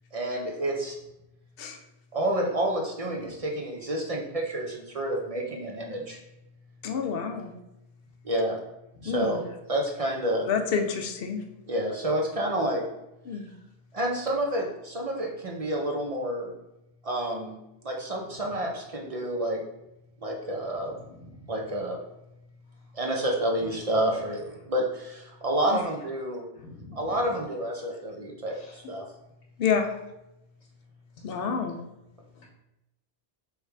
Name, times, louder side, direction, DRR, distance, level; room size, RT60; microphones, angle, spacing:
voice 1, 0.1-1.0 2.1-6.2 8.2-8.6 9.0-10.5 11.7-12.8 13.3-13.4 13.9-16.5 17.0-17.6 17.8-19.6 20.2-21.0 21.5-22.0 22.9-26.4 26.9-29.0, right 1 dB, 40° right, 0.5 m, -29 dB
voice 2, 6.8-7.5 9.1-9.4 10.5-11.4 13.3-13.5 25.7-25.8 29.6-29.9 31.2-31.8, left 6 dB, 60° left, 0.7 m, -28 dB
voice 3, 20.8-21.5 22.7-22.8 23.6-23.7 24.1-24.4 25.8-25.9 26.6-27.4 28.4-28.8 31.3-31.5 32.2-32.5, left 2 dB, 85° left, 1.1 m, -49 dB
3.2 x 3.2 x 4.7 m
omnidirectional pair, 1.2 m